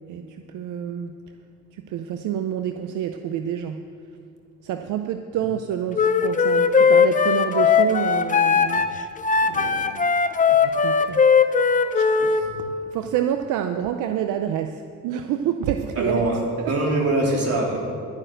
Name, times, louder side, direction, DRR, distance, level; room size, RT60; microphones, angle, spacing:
voice 1, 0.1-1.2 1.7-3.8 4.6-9.1 9.4-10.1 10.5-11.2 11.9-16.2 16.6-16.7 17.3-17.4, right 9 dB, 85° right, 7 dB, 0.6 m, -28 dB
Wind instrument woodwind instrument, 5.9-12.4, left 5 dB, 25° left, 0.7 m, -19 dB
voice 2, 15.9-17.8, right 2 dB, 50° right, -2 dB, 3.3 m, -23 dB
12.0 x 6.7 x 8.9 m, 2.3 s
cardioid pair, 90°, 30 cm